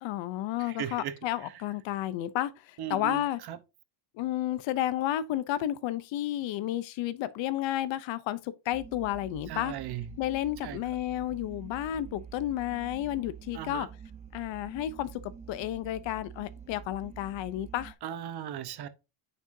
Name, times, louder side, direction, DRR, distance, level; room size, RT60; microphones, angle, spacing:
voice 1, 0.0-3.4 4.1-9.7 10.2-13.9 14.3-15.2 15.5-17.9, left 13 dB, 70° left, 0.7 m, -32 dB
voice 2, 0.8-1.1 2.8-3.2 3.5-3.6 9.5-10.1 10.6-10.8 13.5-13.9 18.0-18.9, right 10 dB, 55° right, 1.0 m, -36 dB
sound 1, 8.7-17.9, right 7 dB, 15° right, 0.4 m, -47 dB
9.6 x 5.5 x 2.6 m
cardioid pair, 155°, 47 cm